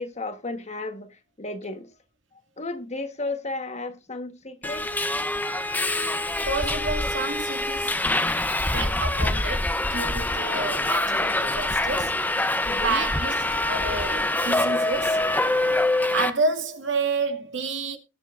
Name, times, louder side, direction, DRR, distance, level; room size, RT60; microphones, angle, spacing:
voice 1, 0.0-1.9 2.6-4.9 12.7-13.1, left 2 dB, 35° left, 1.4 m, -33 dB
Subway metro underground, 4.6-16.3, left 2 dB, 10° left, 0.7 m, -25 dB
voice 2, 6.5-8.0 8.7-12.1 12.8-15.2 16.1-18.0, right 3 dB, 70° right, 2.2 m, -29 dB
20.0 x 7.2 x 2.6 m
head